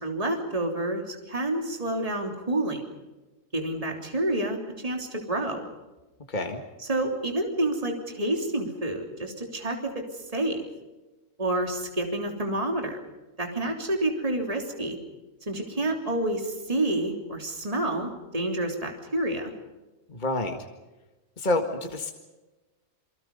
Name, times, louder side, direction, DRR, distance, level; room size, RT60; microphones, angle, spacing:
voice 1, 0.0-2.8 3.5-5.7 6.9-10.6 11.4-13.0 13.4-15.0 15.5-19.5, right 1 dB, 25° right, 2 dB, 3.3 m, -29 dB
voice 2, 6.3-6.6 20.1-20.6 21.4-22.1, left 2 dB, 35° left, 4 dB, 2.0 m, -28 dB
28.5 x 23.5 x 5.4 m, 1.1 s
omnidirectional pair, 1.4 m